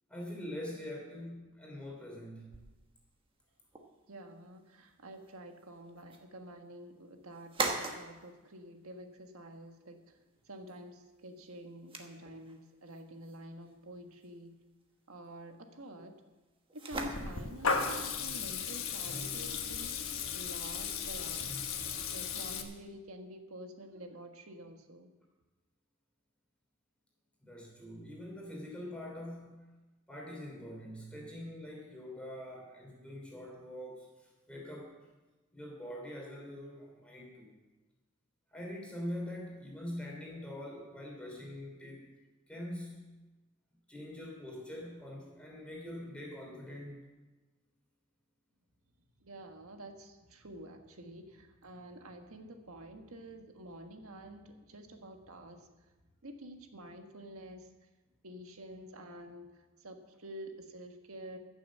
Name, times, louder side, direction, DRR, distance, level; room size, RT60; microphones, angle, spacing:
voice 1, 0.1-2.6 27.4-29.5 30.1-35.0 35.5-37.5 38.5-42.1 42.5-43.1 43.9-47.1, left 1 dB, 5° left, -2 dB, 3.3 m, -44 dB
sound 1, 2.5-20.9, right 3 dB, 25° right, 1.3 m, -45 dB
voice 2, 4.1-10.2 10.4-14.5 15.1-16.1 16.7-21.6 22.1-25.1 49.2-55.9 56.2-57.7 58.2-61.4, right 1 dB, 85° right, 5 dB, 1.5 m, -49 dB
Water tap faucet / Liquid, 16.9-22.6, left 5 dB, 80° left, 1.4 m, -36 dB
15.0 x 7.1 x 7.4 m, 1.1 s
head